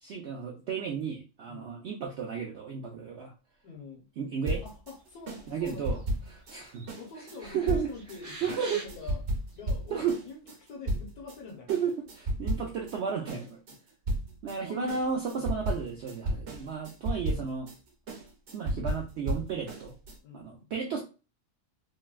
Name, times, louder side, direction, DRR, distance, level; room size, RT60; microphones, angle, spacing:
voice 1, 0.0-3.3 4.2-4.6 5.5-6.0 6.5-6.8 7.4-7.9 8.4-8.8 9.9-10.2 11.7-13.6 14.4-17.7 18.5-19.9 20.3-21.0, right 6 dB, 70° right, 0.6 m, -33 dB
voice 2, 3.6-4.1 4.6-6.0 7.0-9.2 9.6-11.9 14.6-15.0 15.4-15.5 20.2-20.7, left 4 dB, 75° left, 1.4 m, -45 dB
sound 1, 4.5-11.4 11.7-13.0 13.3-20.2, right 1 dB, 50° right, 1.0 m, -34 dB
sound 2, 5.6-6.1 6.4-6.9 7.2-9.1 9.6-9.7, right 2 dB, 30° right, 0.6 m, -45 dB
3.8 x 2.1 x 2.3 m
omnidirectional pair, 1.7 m